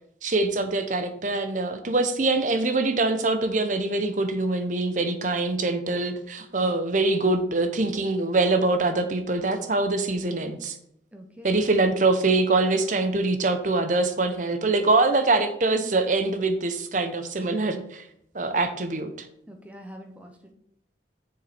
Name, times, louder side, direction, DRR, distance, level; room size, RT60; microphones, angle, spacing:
voice 1, 0.2-10.8 11.4-18.0 18.3-19.3, right 2 dB, 45° right, 9 dB, 0.8 m, -24 dB
voice 2, 11.1-11.6 13.1-13.2 19.5-20.5, equal, 5° right, 4 dB, 0.8 m, -44 dB
6.7 x 6.5 x 4.3 m, 0.74 s
head